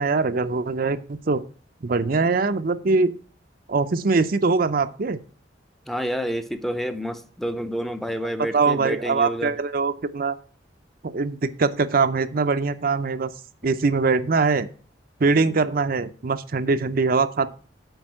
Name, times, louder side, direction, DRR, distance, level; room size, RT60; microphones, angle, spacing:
voice 1, 0.0-1.4 1.8-3.1 3.7-5.2 8.5-10.4 11.0-13.3 13.6-14.7 15.2-17.5, right 4 dB, 55° right, 0.6 m, -22 dB
voice 2, 5.9-9.5, equal, ahead, 0.6 m, -29 dB
8.0 x 5.2 x 7.5 m
head